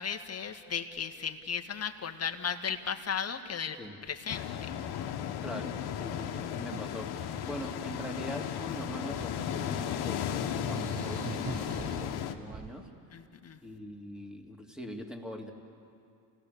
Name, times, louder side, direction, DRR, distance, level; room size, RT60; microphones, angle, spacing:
voice 1, 0.0-3.8 4.1-4.7 13.1-13.6, left 7 dB, 35° left, 6 dB, 1.7 m, -35 dB
sound 1, 4.3-12.3, left 9 dB, 65° left, 1.6 m, -35 dB
voice 2, 5.4-12.9 13.6-15.5, equal, ahead, 3 dB, 2.9 m, -42 dB
sound 2, 5.7-5.9 6.2-7.7 8.7-9.7 10.1-10.2 10.5-12.9, right 4 dB, 20° right, 0.8 m, -44 dB
29.0 x 17.5 x 6.9 m, 2.5 s
supercardioid pair, 75°, 42 cm